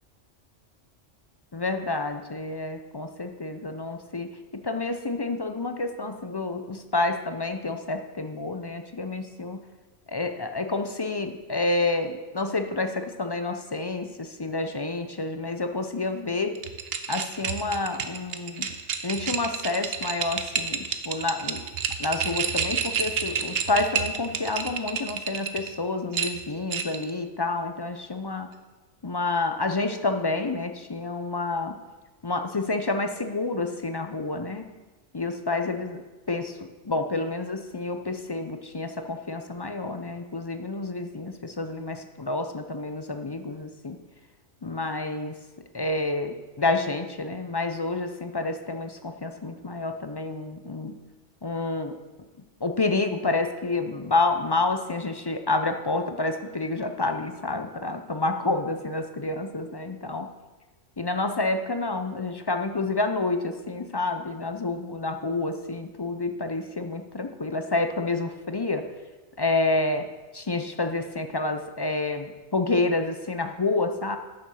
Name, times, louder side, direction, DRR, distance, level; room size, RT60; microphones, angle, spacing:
voice 1, 1.5-9.6 10.1-16.6 17.1-18.7 19.0-21.6 22.0-28.6 29.0-31.8 32.2-34.7 35.1-36.0 36.3-36.6 36.8-44.0 44.6-45.3 45.7-51.0 51.4-52.0 52.6-60.3 61.0-68.9 69.4-70.1 70.3-74.2, left 3 dB, 30° left, 7 dB, 0.4 m, -29 dB
sound 1, 16.6-25.7 26.1-27.1, right 6 dB, 60° right, 0.9 m, -30 dB
9.3 x 6.9 x 6.3 m, 1.2 s
omnidirectional pair, 1.2 m